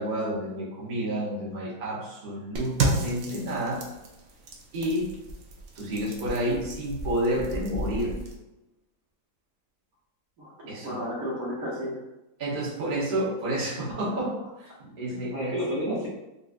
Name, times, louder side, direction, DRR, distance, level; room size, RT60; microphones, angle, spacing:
voice 1, 0.0-3.8 4.7-5.1 5.7-8.2 10.7-11.0 12.4-14.3 14.8-15.6, right 1 dB, 40° right, -7 dB, 0.8 m, -30 dB
sound 1, 2.6-8.4, right 2 dB, 75° right, 0.7 m, -33 dB
voice 2, 10.4-12.0 14.1-14.3 15.1-16.1, equal, 60° right, -6 dB, 1.2 m, -32 dB
3.9 x 2.5 x 2.4 m, 0.97 s
omnidirectional pair, 2.1 m